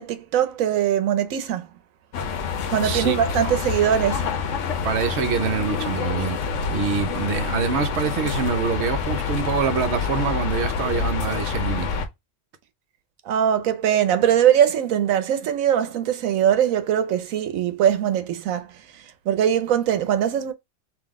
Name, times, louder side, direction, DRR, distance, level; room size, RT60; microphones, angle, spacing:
voice 1, 0.0-1.7 2.7-4.3 13.2-20.5, right 10 dB, 90° right, 1.1 m, -21 dB
sound 1, 2.1-12.1, left 5 dB, 70° left, 1.0 m, -27 dB
voice 2, 2.8-3.2 3.4-3.6 4.8-6.4 6.7-12.1, right 6 dB, 60° right, 1.0 m, -25 dB
3.8 x 2.8 x 3.5 m
omnidirectional pair, 1.4 m